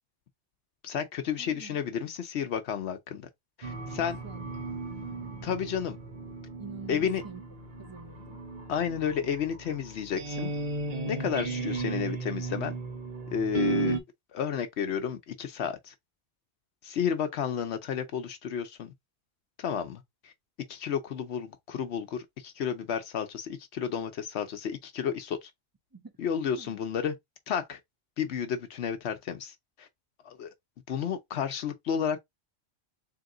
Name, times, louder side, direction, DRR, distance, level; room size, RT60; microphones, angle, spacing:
voice 1, 0.8-3.3 3.6-4.2 5.4-6.0 6.9-7.2 8.7-10.5 11.1-12.8 13.3-14.0 14.3-15.9 16.8-18.9 19.6-20.3 20.7-25.5 26.2-27.1 27.5-27.8 28.2-29.9 30.2-30.5 30.9-32.2, left 7 dB, 80° left, 1.0 m, -32 dB
voice 2, 1.4-1.8 4.0-5.5 6.6-7.4 7.8-8.4 25.9-26.1 26.6-26.8, right 4 dB, 20° right, 0.8 m, -47 dB
sound 1, 3.6-14.0, right 3 dB, 50° right, 1.0 m, -35 dB
3.7 x 2.9 x 3.7 m
omnidirectional pair, 1.1 m